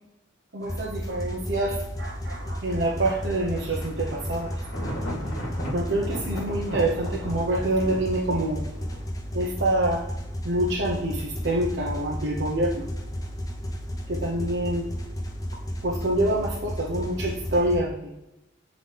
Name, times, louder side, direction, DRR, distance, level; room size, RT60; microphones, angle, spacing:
voice 1, 0.5-4.5 5.7-8.6 9.3-10.1 10.4-12.7 14.1-14.9 15.8-18.1, right 1 dB, 60° right, -3 dB, 0.9 m, -26 dB
sound 1, 0.6-17.8, equal, 20° left, 0.7 m, -33 dB
Thunder, 2.7-9.1, equal, 75° left, 2.1 m, -37 dB
7.6 x 3.9 x 3.3 m, 0.92 s
head